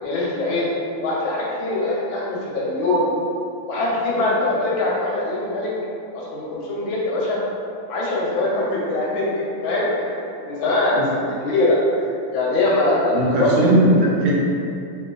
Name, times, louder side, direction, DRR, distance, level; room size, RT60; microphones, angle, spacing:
voice 1, 0.0-0.7 1.0-3.1 3.7-5.7 6.1-7.4 7.9-10.2 10.4-13.5 13.8-14.0, left 2 dB, 75° left, -5 dB, 1.3 m, -22 dB
voice 2, 13.1-14.3, right 1 dB, 85° right, -4 dB, 1.5 m, -17 dB
3.0 x 2.9 x 2.3 m, 2.5 s
omnidirectional pair, 2.4 m